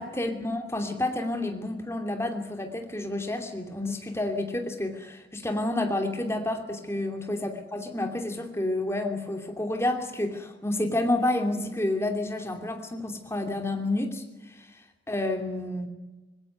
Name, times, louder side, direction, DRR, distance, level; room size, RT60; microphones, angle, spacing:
voice 1, 0.0-14.7 15.1-15.9, left 1 dB, 15° left, 5 dB, 2.8 m, -29 dB
21.0 x 17.0 x 9.5 m, 1.1 s
head